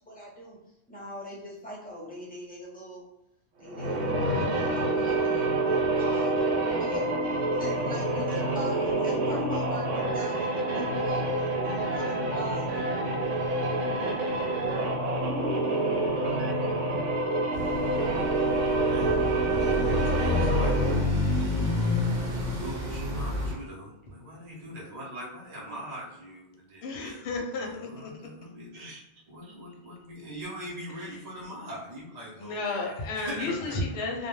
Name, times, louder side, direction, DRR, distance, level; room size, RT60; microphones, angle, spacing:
voice 1, 0.1-0.6 0.9-3.0 3.6-6.5 6.8-7.1 7.6-12.7, right 1 dB, 10° left, -6 dB, 0.5 m, -41 dB
sound 1, 3.7-21.2, right 2 dB, 85° right, 0.9 m, -27 dB
sound 2, 17.5-23.5, left 2 dB, 60° right, 1.0 m, -29 dB
voice 2, 18.9-20.8 22.5-27.2 27.7-33.8, equal, 40° right, -6 dB, 0.6 m, -42 dB
voice 3, 26.8-28.1 32.4-34.3, left 3 dB, 65° left, 1 dB, 0.7 m, -32 dB
2.1 x 2.1 x 3.0 m, 0.83 s
omnidirectional pair, 1.2 m